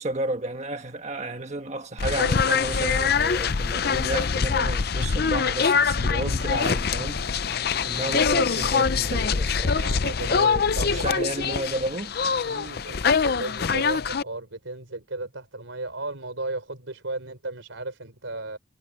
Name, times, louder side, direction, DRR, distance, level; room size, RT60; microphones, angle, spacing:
voice 1, 0.0-7.2 7.8-9.8 10.3-12.1, right 2 dB, 35° right, 1.5 m, -32 dB
sound 1, 2.0-14.2, left 5 dB, 50° left, 0.5 m, -24 dB
voice 2, 9.6-11.3 12.3-18.6, right 2 dB, 75° right, 3.8 m, -35 dB
head